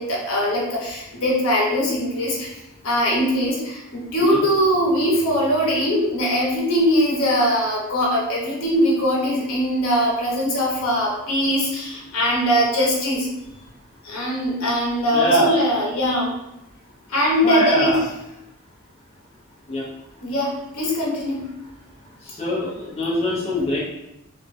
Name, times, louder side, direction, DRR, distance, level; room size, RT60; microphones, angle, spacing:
voice 1, 0.0-2.5 2.8-13.3 14.1-16.3 17.1-18.0 20.2-21.4, equal, 75° left, -3 dB, 0.7 m, -21 dB
voice 2, 15.1-15.6 17.4-18.0 19.7-19.8 22.3-23.8, equal, 30° left, -6 dB, 0.5 m, -22 dB
2.4 x 2.1 x 2.5 m, 0.88 s
head